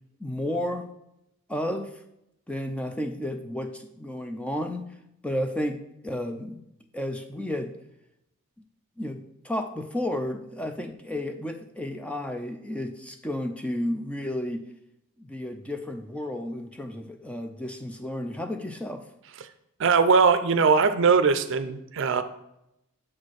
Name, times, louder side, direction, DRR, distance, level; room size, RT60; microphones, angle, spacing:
voice 1, 0.2-0.9 1.5-2.0 2.5-4.9 5.2-6.6 6.9-7.7 9.0-14.7 15.2-19.0, left 1 dB, 5° left, 5 dB, 0.4 m, -32 dB
voice 2, 19.8-22.2, right 5 dB, 55° right, 11 dB, 0.5 m, -20 dB
7.3 x 4.3 x 4.7 m, 0.83 s
head